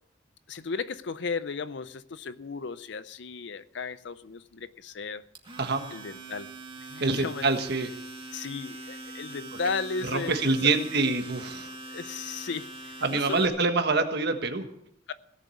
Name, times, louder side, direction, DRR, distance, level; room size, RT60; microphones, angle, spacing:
voice 1, 0.5-5.2 5.9-6.5 6.8-7.5 8.3-10.8 11.9-13.5 15.1-15.2, left 5 dB, 70° left, 0.5 m, -35 dB
Domestic sounds home sounds, 5.3-13.5, right 2 dB, 30° right, 2.1 m, -43 dB
voice 2, 7.0-7.9 10.1-11.7 13.0-14.7, right 3 dB, 60° right, 1.5 m, -26 dB
17.0 x 7.5 x 8.5 m
head